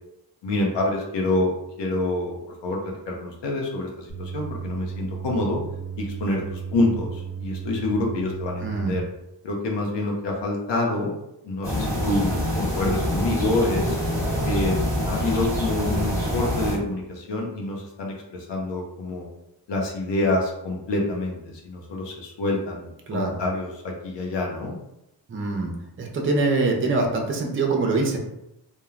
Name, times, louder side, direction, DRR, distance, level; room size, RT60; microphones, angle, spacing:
voice 1, 0.4-2.4 2.6-5.6 6.0-9.0 9.4-11.1 11.4-14.0 14.5-19.3 19.7-24.7, left 2 dB, 80° left, -1 dB, 0.7 m, -27 dB
sound 1, 4.1-9.0, right 7 dB, 40° left, 1.1 m, -34 dB
voice 2, 8.6-9.0 23.1-23.4 25.3-25.7 26.0-28.2, right 3 dB, 30° right, 2 dB, 0.5 m, -24 dB
sound 2, 11.6-16.8, left 1 dB, 5° left, 0.9 m, -25 dB
3.1 x 2.1 x 2.4 m, 0.86 s
wide cardioid pair, 125°, 43 cm